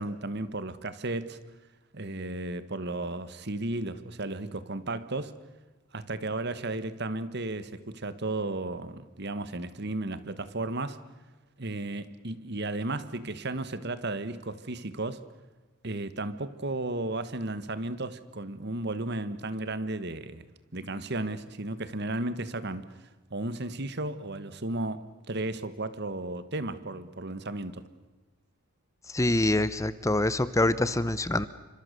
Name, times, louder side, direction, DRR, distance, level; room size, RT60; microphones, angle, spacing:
voice 1, 0.0-1.4 1.9-5.3 5.9-11.0 11.6-15.2 15.8-20.5 20.7-22.9 23.3-27.8, right 2 dB, 50° right, 1.4 m, -34 dB
voice 2, 29.1-31.5, left 1 dB, 15° left, 0.7 m, -25 dB
28.0 x 25.5 x 6.8 m
head